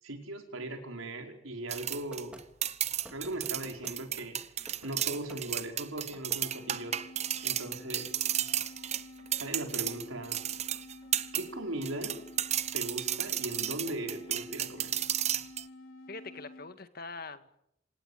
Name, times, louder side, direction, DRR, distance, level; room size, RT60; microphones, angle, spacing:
voice 1, 0.0-2.4 3.1-7.0 7.4-8.1 9.3-10.4 11.3-12.2 12.7-15.0, right 1 dB, 85° right, 4 dB, 5.1 m, -39 dB
sound 1, 1.7-11.5 11.8-15.6, right 11 dB, 30° right, 0.9 m, -33 dB
sound 2, 2.1-2.5 3.0-4.0 4.7-5.4 6.1-6.4, equal, 5° right, 2.4 m, -51 dB
sound 3, 6.4-16.8, left 2 dB, 80° left, 4.2 m, -50 dB
voice 2, 16.1-17.6, left 3 dB, 45° left, 10 dB, 1.8 m, -43 dB
26.0 x 18.5 x 9.5 m, 0.78 s
head